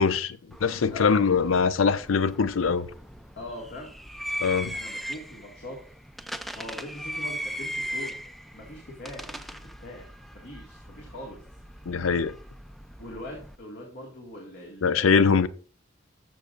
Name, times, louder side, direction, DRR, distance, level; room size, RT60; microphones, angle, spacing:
voice 1, 0.0-2.9 4.4-4.8 11.9-12.3 14.8-15.5, left 5 dB, 90° left, 0.5 m, -23 dB
sound 1, 0.5-13.6, equal, ahead, 0.4 m, -39 dB
voice 2, 3.4-3.9 4.7-5.8 6.5-8.2 8.5-10.1 10.3-11.4 13.0-15.4, left 1 dB, 55° left, 2.0 m, -41 dB
13.0 x 6.7 x 2.5 m
head